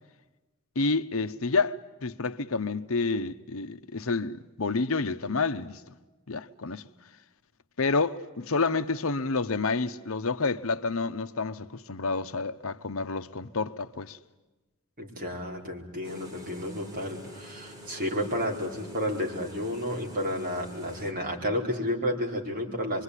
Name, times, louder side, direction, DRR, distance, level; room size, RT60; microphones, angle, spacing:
voice 1, 0.7-5.8 6.3-6.9 7.8-14.2, left 3 dB, 70° left, 0.9 m, -29 dB
voice 2, 15.0-23.0, equal, 40° right, 4.9 m, -31 dB
sound 1, 16.0-21.1, equal, 15° right, 3.1 m, -46 dB
25.5 x 24.0 x 9.9 m
head